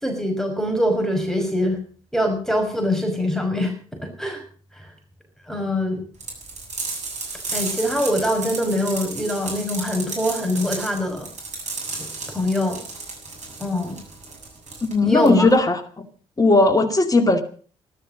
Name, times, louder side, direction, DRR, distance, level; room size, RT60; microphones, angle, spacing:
voice 1, 0.0-1.8 2.1-3.8 4.0-4.4 4.7-4.9 5.5-6.0 7.5-11.3 12.0-12.8 13.6-14.0 15.0-15.5, left 1 dB, 5° left, 3 dB, 5.9 m, -23 dB
sound 1, 6.2-15.6, right 3 dB, 50° right, 7.3 m, -33 dB
voice 2, 14.8-16.0 16.4-17.4, left 2 dB, 25° left, 7 dB, 2.2 m, -17 dB
15.5 x 12.5 x 6.3 m, 0.43 s
hypercardioid pair, 45°, 15 cm